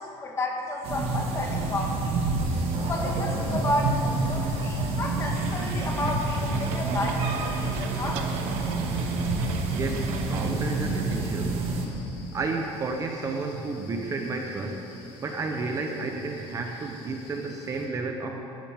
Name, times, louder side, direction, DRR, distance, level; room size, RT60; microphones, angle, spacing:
voice 1, 0.0-2.2 2.5-8.3, left 1 dB, 20° left, 1 dB, 1.7 m, -32 dB
sound 1, 0.8-11.9, right 3 dB, 50° right, 1.9 m, -28 dB
sound 2, 2.4-17.9, left 2 dB, 60° left, 3.9 m, -50 dB
sound 3, 5.3-10.5, right 6 dB, 80° right, 1.1 m, -40 dB
voice 2, 9.7-11.6 12.3-14.8 15.2-18.4, right 3 dB, 25° right, 3 dB, 0.9 m, -31 dB
19.5 x 12.5 x 3.6 m, 2.8 s
cardioid pair, 155°, 12 cm